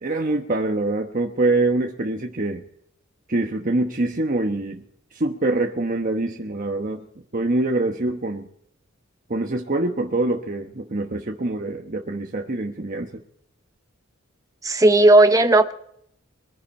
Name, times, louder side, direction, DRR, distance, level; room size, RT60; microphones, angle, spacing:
voice 1, 0.0-2.6 3.3-4.8 5.1-7.0 7.3-8.5 9.3-13.1, right 2 dB, 40° right, 1.1 m, -24 dB
voice 2, 14.6-15.7, right 2 dB, 15° right, 0.9 m, -14 dB
23.0 x 10.0 x 4.3 m
head